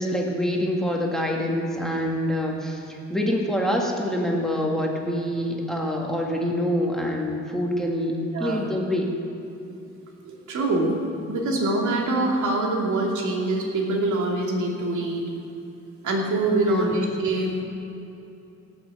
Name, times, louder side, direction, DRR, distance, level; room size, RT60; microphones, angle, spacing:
voice 1, 0.0-9.1 16.7-17.0, equal, ahead, -1 dB, 2.0 m, -26 dB
voice 2, 10.2-10.9 11.3-15.3 16.0-17.6, right 2 dB, 75° right, -1 dB, 2.6 m, -24 dB
18.0 x 6.3 x 7.7 m, 2.8 s
cardioid pair, 115°, 30 cm